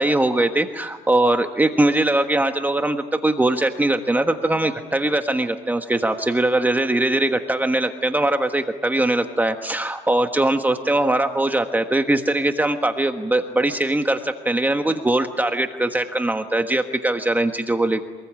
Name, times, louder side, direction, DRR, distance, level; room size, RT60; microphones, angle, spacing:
voice 1, 0.0-18.0, right 1 dB, 10° right, 6 dB, 1.4 m, -21 dB
27.0 x 20.5 x 9.0 m, 1.3 s
cardioid pair, 110°, 17 cm